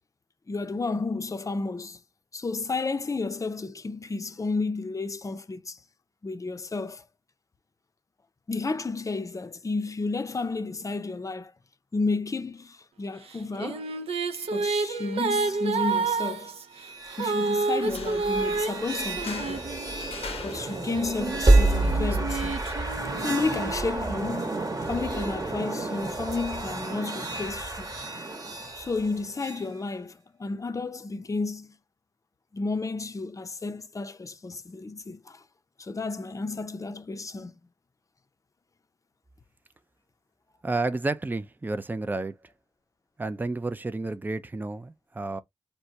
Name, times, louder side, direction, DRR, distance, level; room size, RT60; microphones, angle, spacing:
voice 1, 0.5-2.0 2.3-5.8 6.2-7.0 8.5-11.5 11.9-13.9 14.5-16.5 17.2-19.6 20.4-22.6 23.2-27.9 28.8-31.8 32.5-35.4 35.8-37.5, left 3 dB, 30° left, 0.5 m, -32 dB
Female singing, 13.3-20.2 20.9-24.6, right 4 dB, 75° right, 0.5 m, -30 dB
sound 1, 16.8-29.6, right 2 dB, 35° right, 1.0 m, -29 dB
sound 2, 17.7-24.7, left 5 dB, 75° left, 0.6 m, -45 dB
voice 2, 40.6-42.4 43.2-45.4, right 2 dB, 20° right, 0.4 m, -31 dB
4.4 x 2.2 x 2.7 m
cardioid pair, 45°, 10 cm